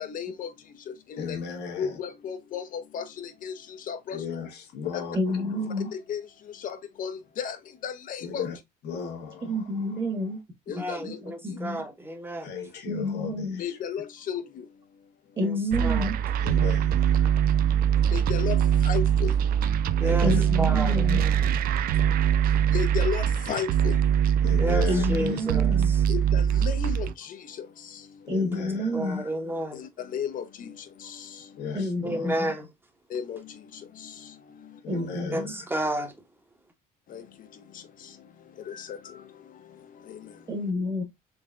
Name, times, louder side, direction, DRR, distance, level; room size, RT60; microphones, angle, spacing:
voice 1, 0.0-1.4 1.8-4.2 4.9-5.0 5.9-8.5 10.7-11.6 13.6-15.4 18.0-20.0 22.4-24.2 26.1-28.3 29.7-31.6 33.1-35.0 37.1-40.5, left 7 dB, 55° left, 0.7 m, -36 dB
voice 2, 1.2-2.0 4.1-5.9 8.2-8.6 8.8-10.0 12.4-13.8 16.4-17.4 20.0-20.4 20.8-20.9 24.4-25.5 28.2-29.3 31.6-32.4 34.8-35.7, left 7 dB, 75° left, 1.3 m, -37 dB
voice 3, 5.1-5.9 9.4-10.4 11.0-11.8 12.9-13.6 15.3-16.1 20.2-21.2 24.9-25.9 28.3-29.2 31.7-32.5 34.9-35.5 40.5-41.0, left 1 dB, 30° right, 1.4 m, -29 dB
voice 4, 10.7-12.5 15.4-16.1 20.0-20.3 20.6-21.4 24.6-26.0 28.9-29.8 32.0-32.7 35.3-36.2, right 1 dB, 10° right, 1.0 m, -31 dB
sound 1, 15.7-27.1, right 8 dB, 60° right, 0.4 m, -23 dB
4.0 x 3.5 x 2.4 m
cardioid pair, 110°, 17 cm